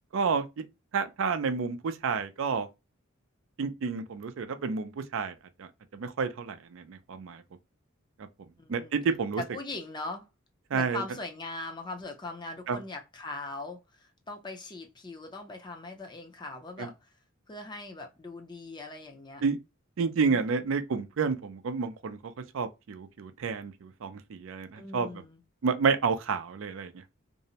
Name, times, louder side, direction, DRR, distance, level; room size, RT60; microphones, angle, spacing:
voice 1, 0.1-0.4 0.9-2.7 3.6-7.4 8.7-9.4 10.7-11.0 12.7-12.8 16.8-16.9 19.4-19.6 20.0-25.1 25.6-26.9, right 5 dB, 65° right, 0.4 m, -30 dB
voice 2, 8.6-9.0 9.4-10.3 10.7-17.1 17.5-19.4 20.3-20.8 24.8-25.4, left 2 dB, 20° left, 0.5 m, -40 dB
2.6 x 2.0 x 2.7 m
head